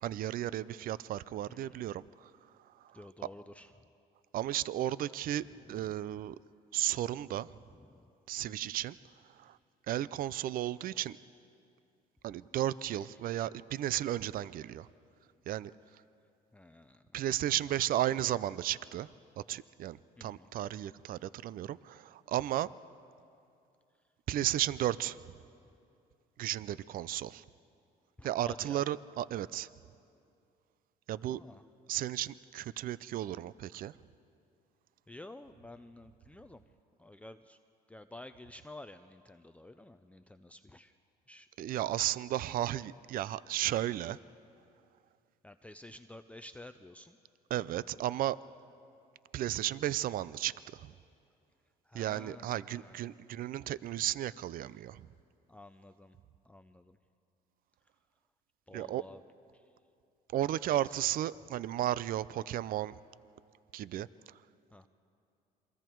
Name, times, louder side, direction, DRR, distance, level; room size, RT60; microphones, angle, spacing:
voice 1, 0.0-2.3 2.7-3.0 4.3-6.4 6.7-7.5 8.3-9.0 9.3-9.6 9.9-11.2 12.2-14.9 15.5-15.7 17.1-19.1 19.4-22.7 24.3-25.2 26.4-27.4 28.2-29.7 31.1-31.4 31.9-33.9 41.6-44.2 47.5-48.4 49.3-50.9 51.9-55.1 58.7-59.0 60.3-63.0 63.7-64.4, right 13 dB, 55° right, 18 dB, 0.5 m, -34 dB
voice 2, 1.5-1.8 2.9-3.7 5.5-5.6 7.8-8.1 8.5-8.7 12.9-13.0 16.5-17.0 17.4-17.5 20.2-20.5 28.2-28.8 31.3-31.6 35.1-36.6 37.0-37.6 37.9-40.9 41.3-41.5 45.4-47.2 51.9-53.0 55.5-56.2 56.4-57.0 58.7-59.2 59.5-59.6 60.7-60.9 64.7-64.9, left 1 dB, 10° left, 8 dB, 0.6 m, -51 dB
28.0 x 23.5 x 4.6 m, 2.5 s
cardioid pair, 110°, 17 cm